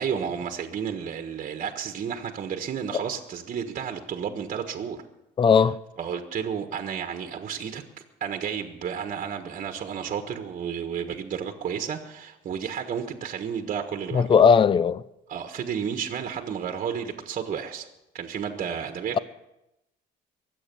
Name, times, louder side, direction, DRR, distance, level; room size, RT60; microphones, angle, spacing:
voice 1, 0.0-5.0 6.0-7.8 8.2-14.3 15.3-17.9 18.1-19.2, right 7 dB, 45° right, 1.5 m, -32 dB
voice 2, 5.4-5.8 14.1-15.0, left 6 dB, 30° left, 0.5 m, -18 dB
22.5 x 8.5 x 7.0 m
cardioid pair, 110°, 17 cm